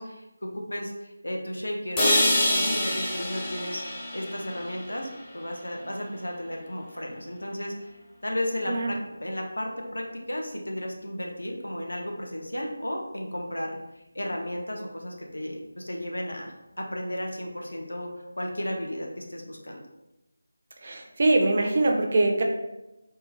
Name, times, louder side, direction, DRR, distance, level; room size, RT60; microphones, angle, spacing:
voice 1, 0.0-3.8 4.1-13.8 14.1-19.8, left 1 dB, 75° left, 1 dB, 0.7 m, -34 dB
sound 1, 2.0-6.0, left 1 dB, 15° left, 0.6 m, -27 dB
voice 2, 20.8-22.4, right 2 dB, 40° right, 2 dB, 0.4 m, -23 dB
3.6 x 2.2 x 2.7 m, 0.95 s
figure-of-eight pair, 160°, 0 cm